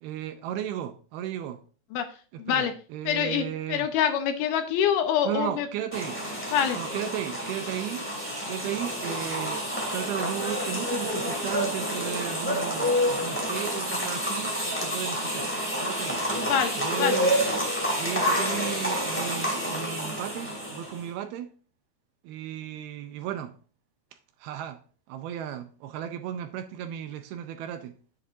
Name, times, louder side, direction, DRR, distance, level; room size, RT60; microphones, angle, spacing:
voice 1, 0.0-1.6 2.3-3.9 5.2-6.2 6.8-8.1 8.5-15.5 15.8-16.2 16.8-17.4 18.0-21.5 22.2-23.5 24.4-24.8 25.1-28.0, right 11 dB, 80° right, 2.4 m, -35 dB
voice 2, 2.4-2.7 3.1-5.7 6.5-6.8 16.4-16.7 17.0-17.2, left 8 dB, 75° left, 2.6 m, -25 dB
sound 1, 5.9-21.1, equal, 10° left, 0.6 m, -29 dB
9.9 x 8.1 x 2.6 m
omnidirectional pair, 4.8 m